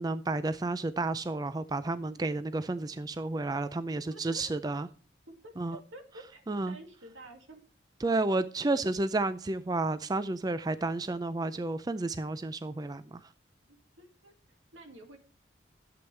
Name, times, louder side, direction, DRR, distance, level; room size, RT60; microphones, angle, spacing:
voice 1, 0.0-4.9 5.6-5.8 6.5-6.8 8.0-13.3, right 2 dB, 20° right, 0.3 m, -31 dB
voice 2, 3.9-4.4 5.3-7.6 8.0-8.2 8.7-8.8 13.7-15.2, right 1 dB, 90° right, 2.2 m, -51 dB
12.0 x 7.9 x 3.3 m
head